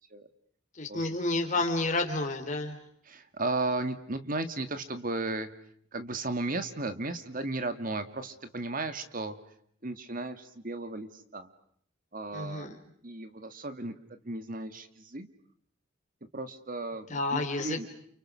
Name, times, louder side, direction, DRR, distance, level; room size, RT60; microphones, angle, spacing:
voice 1, 0.7-2.8 12.3-12.8 17.1-17.8, left 2 dB, 35° left, 5 dB, 3.9 m, -30 dB
voice 2, 3.1-5.5 5.9-9.4 9.8-11.5 12.1-12.8 13.0-13.9 14.2-15.3 16.3-17.9, right 2 dB, 45° right, 10 dB, 2.0 m, -35 dB
29.5 x 29.5 x 6.4 m, 0.66 s
head